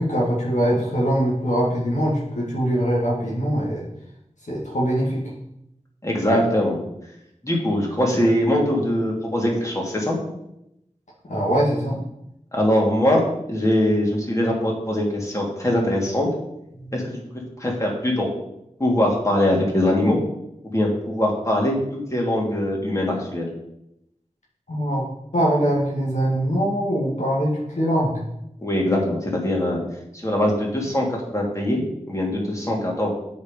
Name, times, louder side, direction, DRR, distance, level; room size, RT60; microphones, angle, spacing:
voice 1, 0.0-3.8 4.5-5.3 11.3-12.0 16.8-16.9 24.7-25.0 25.3-28.2, equal, 75° left, -6 dB, 2.1 m, -22 dB
voice 2, 6.0-6.8 7.4-10.2 12.5-13.2 13.5-16.3 16.9-17.2 17.6-18.3 18.8-20.2 20.7-23.5 28.6-29.8 30.2-31.8 32.1-33.1, left 1 dB, 25° left, -2 dB, 2.6 m, -22 dB
7.9 x 5.2 x 5.3 m, 0.82 s
wide cardioid pair, 70°, 12 cm